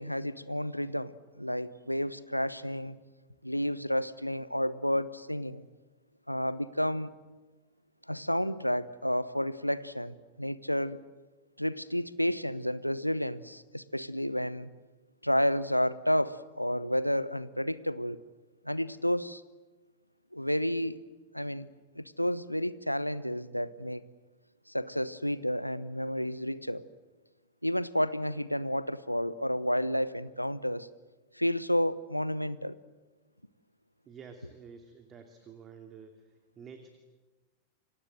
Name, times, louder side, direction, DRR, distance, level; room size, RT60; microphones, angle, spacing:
voice 1, 0.0-3.0 3.4-5.6 6.3-7.1 8.1-11.0 11.6-14.7 15.2-18.2 18.6-19.4 20.3-21.0 21.3-21.7 21.9-24.0 24.7-26.9 27.6-30.9 31.3-32.8, equal, 90° left, 16 dB, 1.0 m, -31 dB
voice 2, 34.1-36.3 36.6-36.9, right 6 dB, 25° right, 5 dB, 2.8 m, -49 dB
28.5 x 25.0 x 7.9 m, 1.2 s
figure-of-eight pair, 90°, 0 cm